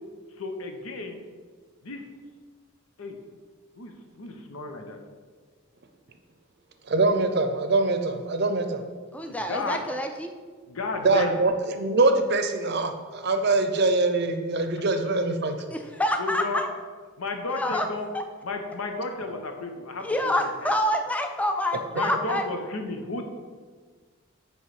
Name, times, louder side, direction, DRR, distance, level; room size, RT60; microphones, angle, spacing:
voice 1, 0.3-1.2 1.9-2.0 3.0-3.2 3.8-5.0 9.3-9.8 10.7-11.4 16.2-16.6 17.2-18.1 18.4-20.7 21.9-23.3, left 3 dB, 90° left, 4 dB, 0.8 m, -33 dB
voice 2, 6.9-8.8 11.0-15.5, right 2 dB, 50° right, 7 dB, 0.6 m, -23 dB
voice 3, 9.1-10.3 15.7-16.7 17.5-17.9 18.1-18.2 20.0-22.4, left 1 dB, 5° left, 5 dB, 0.4 m, -27 dB
9.0 x 3.2 x 4.8 m, 1.5 s
head